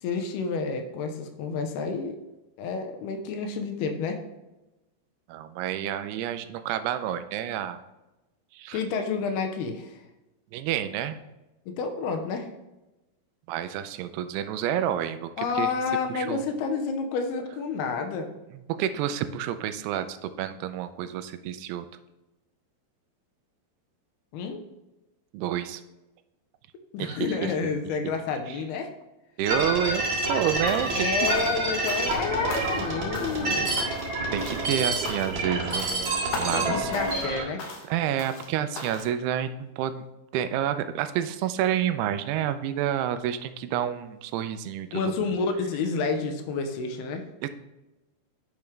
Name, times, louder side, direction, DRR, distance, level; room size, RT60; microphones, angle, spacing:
voice 1, 0.0-2.2 2.6-4.2 8.7-10.0 11.8-12.5 15.4-18.3 24.3-24.6 26.9-28.9 30.9-33.9 36.5-37.6 44.9-47.2, left 5 dB, 90° left, 5 dB, 2.8 m, -29 dB
voice 2, 5.3-7.8 8.5-8.8 10.5-11.2 13.5-15.7 16.1-16.4 18.7-21.9 25.3-25.8 27.0-27.2 29.4-31.1 34.3-36.9 37.3-37.5 37.9-40.1 40.3-45.2 47.4-47.5, right 10 dB, 85° right, 10 dB, 2.6 m, -29 dB
sound 1, 29.5-37.4, right 2 dB, 40° right, 1.9 m, -28 dB
sound 2, 30.7-31.0 31.3-32.2 32.5-32.9 33.1-33.5 33.8-34.1 34.4-34.7 35.0-35.4 35.7-36.0 36.3-36.7 36.9-37.3 37.6-37.9 38.2-38.5 38.8-39.1, left 3 dB, 65° left, 2.7 m, -38 dB
10.5 x 5.9 x 3.3 m, 1.0 s
omnidirectional pair, 4.6 m